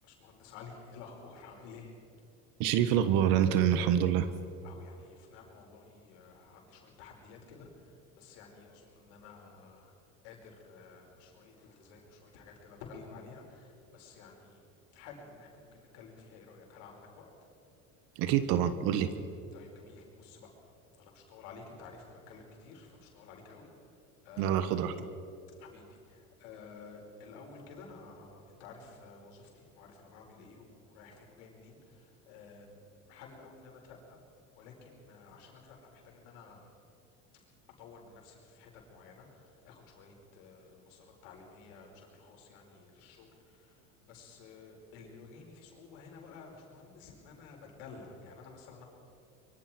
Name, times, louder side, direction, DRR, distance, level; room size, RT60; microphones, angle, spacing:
voice 1, 0.0-2.0 4.6-9.9 10.2-14.6 14.9-17.3 19.5-20.5 21.0-23.7 24.2-24.8 25.6-32.8 33.1-34.2 34.5-36.7 37.8-48.8, left 4 dB, 70° left, 0 dB, 5.2 m, -52 dB
voice 2, 2.6-4.3 18.1-19.1 24.4-24.9, right 10 dB, 65° right, 11 dB, 1.6 m, -26 dB
24.5 x 23.0 x 4.6 m, 2.5 s
hypercardioid pair, 75°, 39 cm